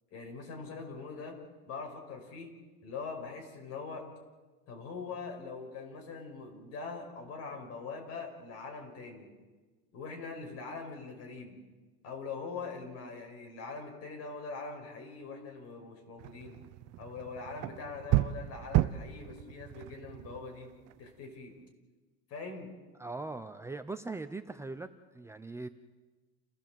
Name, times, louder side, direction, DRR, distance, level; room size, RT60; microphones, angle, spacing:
voice 1, 0.1-1.4 1.7-2.5 2.8-4.1 4.7-9.3 9.9-11.6 12.0-16.6 17.0-20.7 21.0-21.5 22.3-22.7, left 4 dB, 55° left, 2 dB, 5.7 m, -42 dB
sound 1, 16.2-21.1, right 16 dB, 60° right, 0.7 m, -33 dB
voice 2, 23.0-24.9 25.1-25.7, right 3 dB, 10° right, 8 dB, 0.7 m, -40 dB
29.0 x 16.5 x 7.7 m, 1.3 s
cardioid pair, 150°, 30 cm